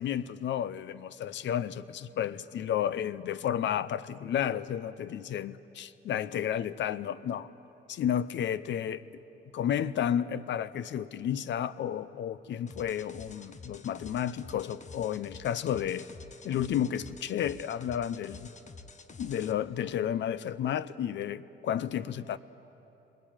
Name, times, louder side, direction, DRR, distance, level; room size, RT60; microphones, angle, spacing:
voice 1, 0.0-7.5 7.9-9.0 9.5-16.1 16.4-18.5 19.2-22.4, left 9 dB, 65° left, 0.7 m, -32 dB
sound 1, 12.7-19.5, left 4 dB, 35° left, 1.2 m, -49 dB
22.0 x 20.5 x 9.0 m
cardioid pair, 90°, 20 cm